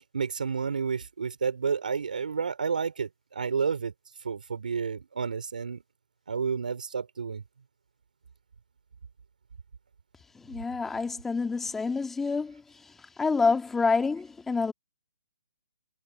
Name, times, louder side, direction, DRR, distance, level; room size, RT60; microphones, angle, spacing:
voice 1, 0.1-3.9 4.2-5.8 6.3-7.4, right 6 dB, 80° right, 4.6 m, -30 dB
voice 2, 10.4-12.6 13.2-14.7, left 4 dB, 5° left, 2.0 m, -27 dB
hypercardioid pair, 155°, 4 cm